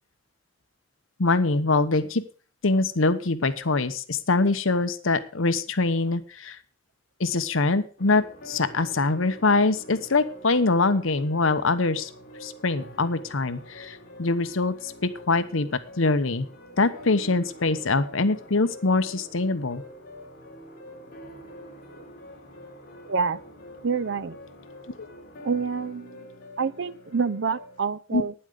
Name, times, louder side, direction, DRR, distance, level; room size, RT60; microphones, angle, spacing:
voice 1, 1.2-2.2 2.6-6.6 7.2-12.1 12.4-15.7 16.0-16.5 16.8-19.8 28.1-28.2, left 3 dB, 70° left, 1.0 m, -24 dB
sound 1, 8.0-27.8, left 1 dB, 45° left, 3.9 m, -45 dB
voice 2, 23.1-23.4 23.8-24.4 25.4-26.3 26.6-28.3, right 5 dB, 60° right, 0.7 m, -27 dB
11.5 x 9.8 x 5.0 m
head